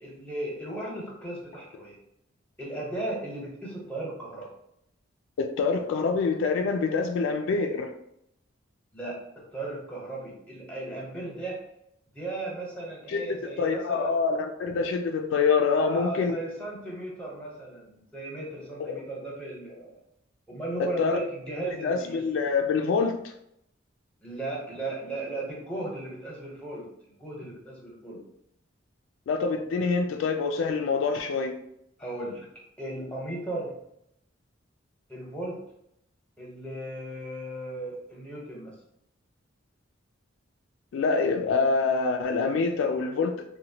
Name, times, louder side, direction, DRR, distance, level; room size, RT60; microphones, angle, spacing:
voice 1, 0.0-2.0 2.6-4.5 8.9-9.2 9.5-11.6 12.1-14.1 15.7-20.0 20.5-22.2 24.2-26.9 27.2-28.2 32.0-32.5 32.8-33.7 35.1-35.6 36.4-38.7, right 2 dB, 5° left, 0.8 m, -36 dB
voice 2, 5.4-7.9 13.1-13.3 13.6-16.4 18.8-19.0 20.8-21.2 21.8-23.2 29.3-31.6 40.9-43.4, left 4 dB, 80° left, 0.3 m, -26 dB
2.9 x 2.1 x 2.7 m
head